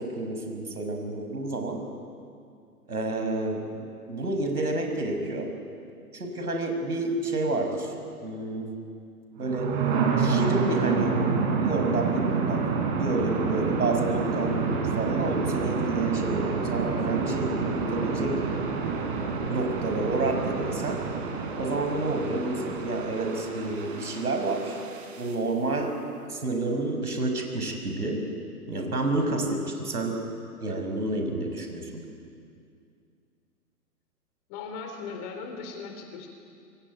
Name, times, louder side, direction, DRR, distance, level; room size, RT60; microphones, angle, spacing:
voice 1, 0.0-1.8 2.9-5.5 6.1-7.9 8.2-8.7 9.4-9.8 10.2-11.2 11.6-18.4 19.5-21.1 21.6-24.8 25.2-26.0 26.3-28.3 28.7-30.2 30.6-31.9, right 2 dB, 75° right, 4 dB, 6.1 m, -29 dB
sound 1, 9.4-25.3, right 5 dB, 35° right, 4.6 m, -28 dB
voice 2, 34.5-36.3, left 5 dB, 25° left, 5 dB, 3.9 m, -38 dB
25.5 x 23.5 x 9.5 m, 2.3 s
figure-of-eight pair, 125°, 46 cm